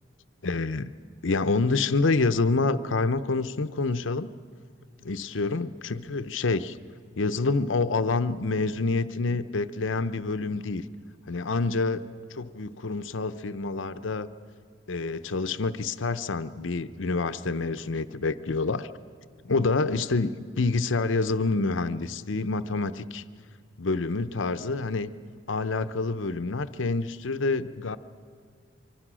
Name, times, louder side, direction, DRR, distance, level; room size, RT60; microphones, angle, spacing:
voice 1, 0.4-0.9 1.2-4.3 5.1-6.8 7.2-10.8 11.3-12.0 12.3-14.3 14.9-18.9 19.4-20.3 20.6-23.2 23.8-25.1 25.5-28.0, left 3 dB, 75° left, 11 dB, 0.7 m, -27 dB
25.0 x 24.0 x 6.2 m, 2.1 s
head